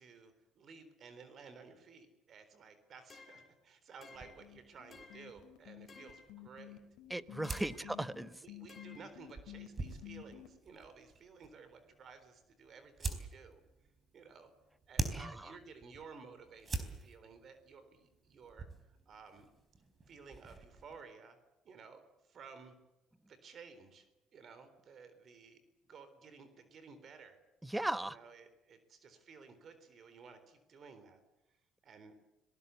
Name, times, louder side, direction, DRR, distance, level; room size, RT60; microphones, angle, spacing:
voice 1, 0.0-6.8 7.6-7.9 8.4-13.6 14.1-14.5 14.9-18.7 19.1-19.5 20.1-21.4 21.6-22.0 22.3-22.7 23.3-24.1 24.3-27.4 28.1-31.2 31.8-32.1, right 5 dB, 50° right, 10 dB, 3.8 m, -55 dB
sound 1, 3.1-3.5 4.0-4.5 4.9-5.4 5.9-6.3 7.4-7.9 8.7-9.1, left 4 dB, 25° left, 4.9 m, -56 dB
sound 2, 4.1-10.5, left 15 dB, 80° left, 2.9 m, -51 dB
sound 3, 4.1-21.0, right 3 dB, 25° right, 4.1 m, -46 dB
voice 2, 7.1-8.4 15.1-15.6 27.6-28.2, right 1 dB, 10° right, 14 dB, 1.0 m, -38 dB
26.0 x 18.5 x 8.3 m, 0.98 s
cardioid pair, 110°, 0 cm